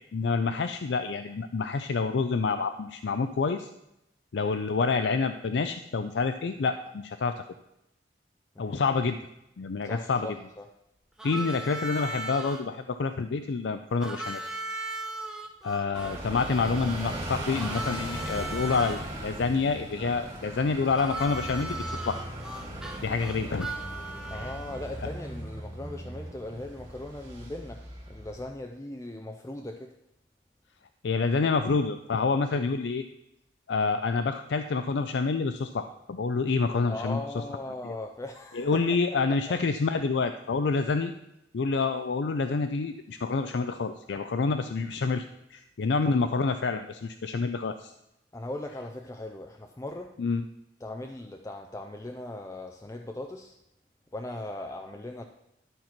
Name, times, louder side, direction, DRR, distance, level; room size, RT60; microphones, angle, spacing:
voice 1, 0.1-3.7 4.3-7.4 8.6-9.2 9.6-10.3 11.2-14.4 15.6-22.2 23.0-23.7 24.3-24.5 31.0-33.0 33.7-37.2 37.8-38.0 38.5-41.1 41.5-45.2 45.5-47.9 50.2-50.4, left 4 dB, 75° left, 8 dB, 0.4 m, -28 dB
voice 2, 9.8-10.7 24.3-29.9 36.9-38.8 39.1-39.6 40.7-40.8 46.0-46.2 48.3-50.1 50.8-53.5 54.1-55.2, left 1 dB, 15° left, 3 dB, 0.5 m, -39 dB
Harmonica, 11.2-12.6 14.0-19.0 20.9-24.9, right 2 dB, 5° right, 0.8 m, -38 dB
sound 1, 15.9-28.5, right 1 dB, 20° right, 2.2 m, -38 dB
12.0 x 4.5 x 5.8 m, 0.85 s
head